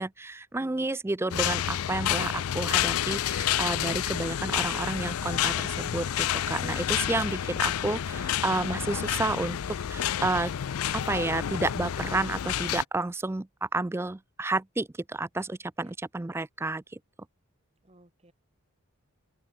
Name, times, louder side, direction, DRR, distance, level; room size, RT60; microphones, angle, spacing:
voice 1, 0.0-10.5 10.9-17.0, right 2 dB, 10° right, 0.3 m, -31 dB
sound 1, 1.3-12.8, left 10 dB, 75° left, 0.4 m, -29 dB
voice 2, 17.8-18.3, right 1 dB, 30° right, 2.0 m, -58 dB
open air
head